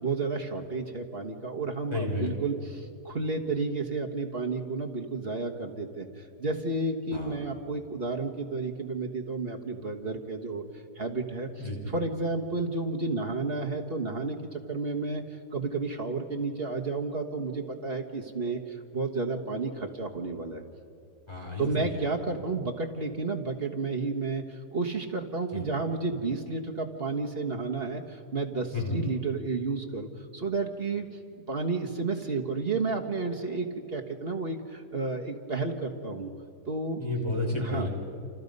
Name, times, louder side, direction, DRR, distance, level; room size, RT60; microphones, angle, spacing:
voice 1, 0.0-10.6 10.9-15.2 15.5-20.6 21.6-31.1 31.5-36.3 36.7-37.0 37.6-37.9, right 3 dB, 35° right, 2 dB, 1.5 m, -31 dB
voice 2, 1.9-2.3 7.1-7.4 11.6-11.9 21.3-22.0 25.5-25.6 28.7-29.0 37.0-37.9, left 2 dB, 15° left, -2 dB, 4.9 m, -31 dB
30.0 x 27.5 x 5.4 m, 2.5 s
omnidirectional pair, 1.9 m